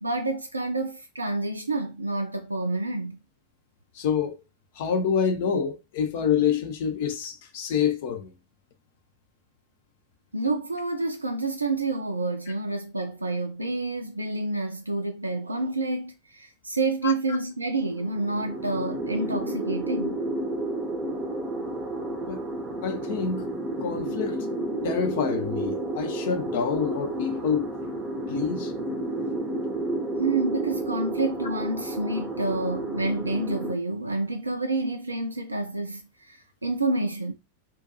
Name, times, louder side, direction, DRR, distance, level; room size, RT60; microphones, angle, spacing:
voice 1, 0.0-3.2 10.3-20.2 30.2-37.3, right 2 dB, 80° right, 0.3 m, -28 dB
voice 2, 4.0-4.3 4.8-8.3 17.0-17.1 22.3-22.4 22.8-23.5 23.8-24.5 24.8-27.7 28.3-28.7, left 7 dB, 50° left, 0.5 m, -27 dB
sound 1, 17.8-33.7, right 2 dB, 20° right, 0.6 m, -31 dB
2.5 x 2.2 x 2.7 m
figure-of-eight pair, 90°, 0 cm